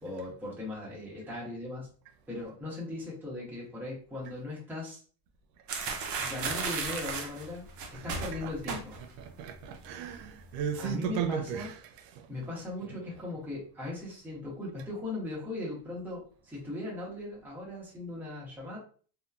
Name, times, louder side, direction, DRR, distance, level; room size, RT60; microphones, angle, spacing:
voice 1, 0.0-1.9 2.3-5.0 6.2-7.6 7.9-9.0 10.7-11.7 12.3-18.8, left 2 dB, 5° right, 0.9 m, -38 dB
sound 1, 5.7-9.2 9.5-9.8 10.1-10.7, right 4 dB, 40° right, 0.5 m, -35 dB
voice 2, 7.9-12.5, right 8 dB, 85° right, 0.6 m, -37 dB
2.8 x 2.2 x 2.3 m
cardioid pair, 145°, 48 cm